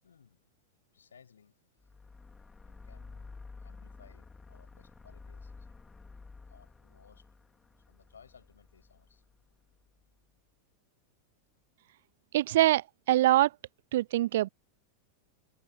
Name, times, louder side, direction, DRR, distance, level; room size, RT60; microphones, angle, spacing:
voice 1, 0.0-0.5 0.9-1.9 2.6-3.3 3.6-5.7 6.5-7.3 7.9-9.2, left 7 dB, 70° left, 8.0 m, -60 dB
sound 1, 1.8-10.1, left 4 dB, 10° left, 3.5 m, -51 dB
voice 2, 12.3-13.5 13.9-14.5, right 15 dB, 55° right, 0.6 m, -24 dB
figure-of-eight pair, 90°, 0 cm